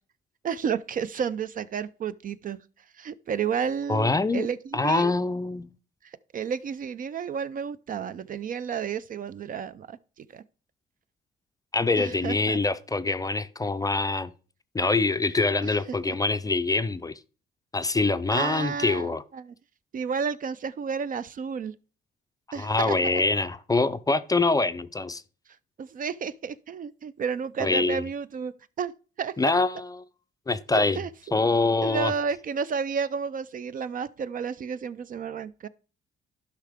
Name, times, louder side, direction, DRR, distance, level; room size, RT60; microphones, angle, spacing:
voice 1, 0.4-2.6 2.9-5.1 6.3-10.4 12.0-12.6 15.6-15.8 16.1-16.2 18.3-19.5 19.9-21.7 22.5-23.2 25.8-28.9 29.2-29.6 30.7-31.1 31.8-35.7, right 6 dB, 45° right, 0.4 m, -31 dB
voice 2, 3.9-4.5 4.7-5.7 11.7-14.3 14.7-17.1 17.7-19.2 22.5-25.2 27.6-28.0 29.4-30.0 30.5-31.0 31.3-32.1, left 3 dB, 20° left, 0.4 m, -24 dB
12.0 x 5.7 x 3.5 m
cardioid pair, 90°, 20 cm